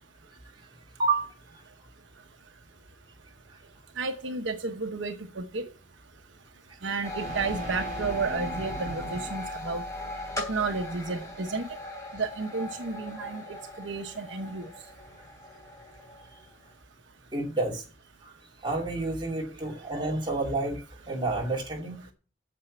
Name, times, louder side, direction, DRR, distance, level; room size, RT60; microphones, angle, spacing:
voice 1, 1.0-1.3 17.3-17.8 18.2-18.3 18.6-20.8 21.1-22.0, right 3 dB, 25° right, 2.6 m, -29 dB
sound 1, 2.6-9.6, right 1 dB, 45° right, 4.6 m, -42 dB
voice 2, 4.0-5.6 6.8-9.9 10.4-11.7 12.1-14.7, right 4 dB, 75° right, 1.0 m, -32 dB
sound 2, 7.0-16.6, left 2 dB, 15° left, 3.3 m, -39 dB
8.4 x 7.0 x 8.5 m
head